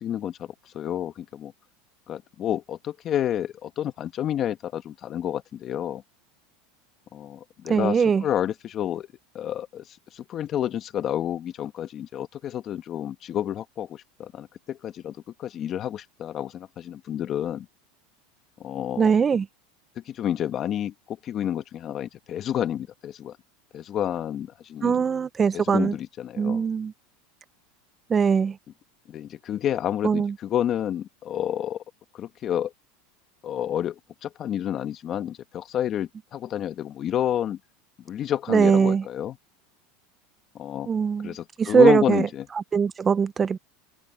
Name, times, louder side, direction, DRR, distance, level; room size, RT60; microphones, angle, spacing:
voice 1, 0.0-1.5 2.1-6.0 7.1-9.1 9.3-9.8 10.1-17.7 18.6-19.1 19.9-23.4 23.7-25.0 25.5-26.7 29.1-31.8 32.1-32.7 33.4-37.6 38.0-39.4 40.5-40.9 41.2-42.4, left 10 dB, 35° left, 1.6 m, -29 dB
voice 2, 7.7-8.2 19.0-19.5 24.8-25.9 26.4-26.9 28.1-28.6 30.0-30.3 38.5-39.0 40.9-42.3 42.5-43.6, right 6 dB, 20° right, 0.4 m, -21 dB
supercardioid pair, 130°, 0 cm